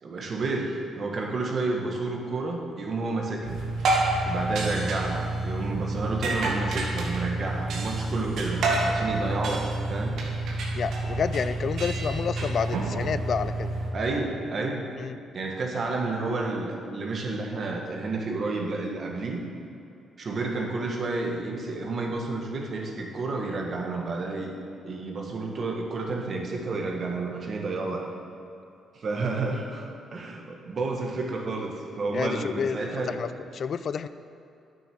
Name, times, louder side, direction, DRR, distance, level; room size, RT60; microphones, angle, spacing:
voice 1, 0.0-3.6 4.2-10.2 13.9-14.9 15.3-19.4 20.2-24.5 24.8-28.1 28.9-33.2, right 3 dB, 50° right, 1 dB, 1.6 m, -30 dB
sound 1, 3.4-13.9, right 2 dB, 70° right, 1.6 m, -28 dB
voice 2, 10.7-13.7 15.0-15.2 32.1-33.3 33.5-34.1, left 6 dB, 55° left, 13 dB, 0.3 m, -29 dB
9.4 x 7.2 x 6.2 m, 2.6 s
cardioid pair, 90°, 0 cm